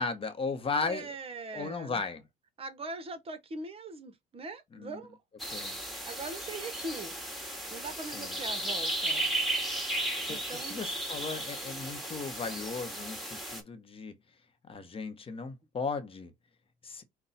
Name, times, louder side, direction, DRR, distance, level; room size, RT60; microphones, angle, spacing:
voice 1, 0.0-1.1 1.5-2.2 4.8-4.9 5.5-5.7 8.1-8.3 10.3-10.4 10.7-14.1 14.7-16.3 16.8-17.0, left 4 dB, 35° left, 0.9 m, -36 dB
voice 2, 0.8-2.0 2.6-5.2 6.0-7.1 7.7-9.3 10.3-10.8, right 3 dB, 35° right, 1.0 m, -41 dB
sound 1, 5.4-13.6, right 1 dB, ahead, 1.8 m, -35 dB
5.4 x 2.2 x 4.0 m
supercardioid pair, 85°, 17 cm